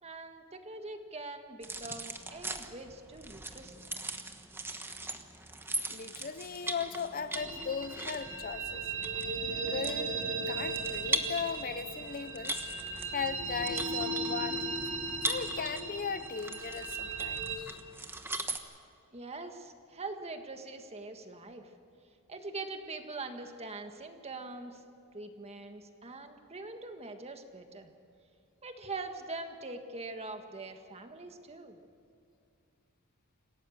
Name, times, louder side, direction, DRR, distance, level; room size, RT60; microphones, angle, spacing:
voice 1, 0.0-3.9 19.1-21.7 22.3-24.8 25.1-27.9 28.6-31.8, right 3 dB, 30° right, 6 dB, 1.6 m, -43 dB
sound 1, 1.6-18.6, right 2 dB, 10° right, 1.1 m, -40 dB
voice 2, 5.9-8.9 9.5-10.1 10.5-12.6 13.1-14.8 15.3-17.8, left 6 dB, 40° left, 13 dB, 0.6 m, -38 dB
sound 2, 7.3-17.6, right 3 dB, 60° right, 2.7 m, -36 dB
27.0 x 17.0 x 6.6 m, 2.5 s
head